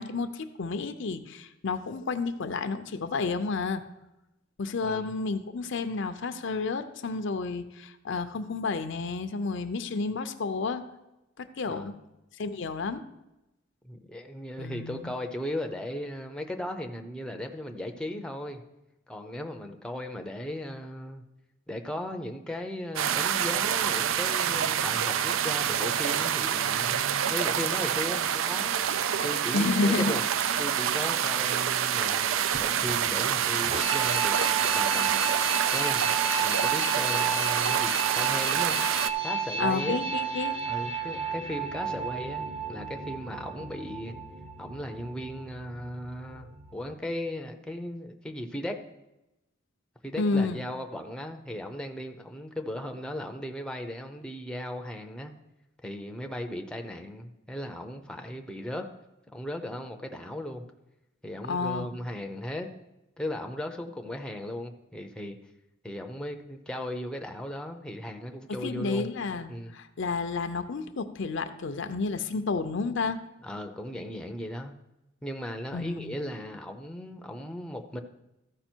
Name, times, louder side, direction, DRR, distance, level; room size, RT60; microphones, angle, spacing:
voice 1, 0.0-3.8 4.6-10.8 11.4-11.9 12.4-13.0 14.6-15.1 29.5-30.1 39.6-40.6 50.2-50.6 61.5-61.9 68.6-73.2 75.7-76.2, left 4 dB, 65° left, 10 dB, 0.6 m, -31 dB
voice 2, 4.8-5.1 11.7-11.9 13.8-18.6 19.1-21.2 21.7-28.7 29.2-30.2 30.6-35.2 35.7-36.1 36.4-38.8 39.2-40.0 40.6-44.1 44.6-48.7 50.0-55.3 55.8-58.9 59.3-60.6 61.2-62.7 63.2-65.4 65.8-69.1 69.5-69.7 73.4-74.7 75.2-78.0, left 1 dB, 5° left, 4 dB, 0.6 m, -37 dB
sound 1, 23.0-39.1, right 9 dB, 85° right, 0.4 m, -27 dB
sound 2, 29.1-46.9, right 5 dB, 30° right, 0.8 m, -33 dB
14.0 x 4.9 x 4.5 m, 0.94 s
head